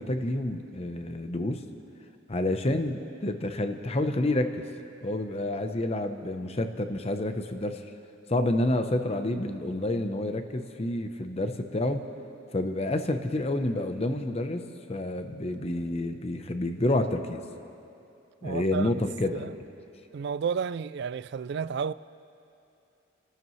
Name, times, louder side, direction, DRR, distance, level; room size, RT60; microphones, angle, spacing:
voice 1, 0.0-1.6 2.3-4.6 5.0-7.8 8.3-12.0 12.5-17.4 18.4-19.5, left 1 dB, 30° left, 0.8 m, -29 dB
voice 2, 18.4-19.1 19.3-19.5 20.1-21.9, right 6 dB, 55° right, 0.3 m, -32 dB
30.0 x 13.0 x 3.2 m
head